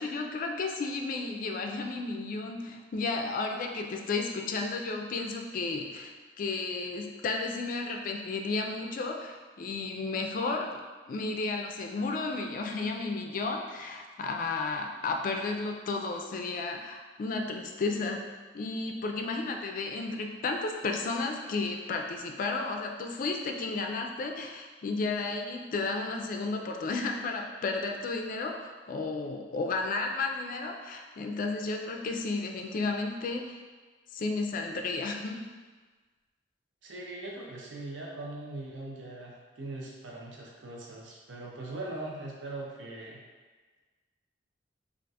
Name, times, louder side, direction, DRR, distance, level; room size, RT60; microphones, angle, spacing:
voice 1, 0.0-6.1 6.4-10.8 11.1-18.2 18.5-33.6 34.1-35.4, left 3 dB, 50° left, 3 dB, 0.3 m, -33 dB
voice 2, 36.8-43.2, right 2 dB, 90° right, -2 dB, 0.5 m, -41 dB
2.4 x 2.3 x 4.0 m, 1.4 s
head